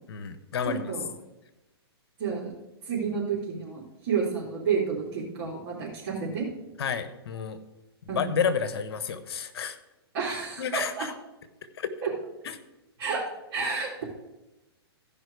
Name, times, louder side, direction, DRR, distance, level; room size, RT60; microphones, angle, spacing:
voice 1, 0.1-0.8 6.8-7.6 8.1-9.8 10.6-11.1 11.8-11.9 12.4-12.6, left 6 dB, 65° left, 11 dB, 1.1 m, -30 dB
voice 2, 0.6-1.1 2.2-2.5 2.8-6.5 8.1-8.3 10.1-11.1 12.0-12.1 13.0-13.2 13.5-14.0, right 5 dB, 45° right, -8 dB, 3.4 m, -30 dB
15.5 x 5.4 x 4.8 m, 1.0 s
hypercardioid pair, 135°, 14 cm